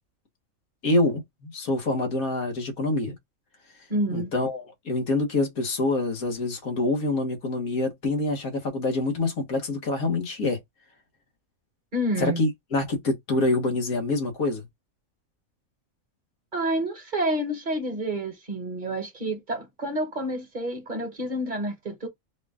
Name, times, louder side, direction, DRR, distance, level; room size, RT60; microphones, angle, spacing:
voice 1, 0.8-3.1 4.1-10.6 12.2-14.7, left 2 dB, 85° left, 2.0 m, -26 dB
voice 2, 3.9-4.3 11.9-12.4 16.5-22.1, right 1 dB, 40° right, 1.1 m, -29 dB
4.8 x 2.5 x 3.5 m
omnidirectional pair, 1.4 m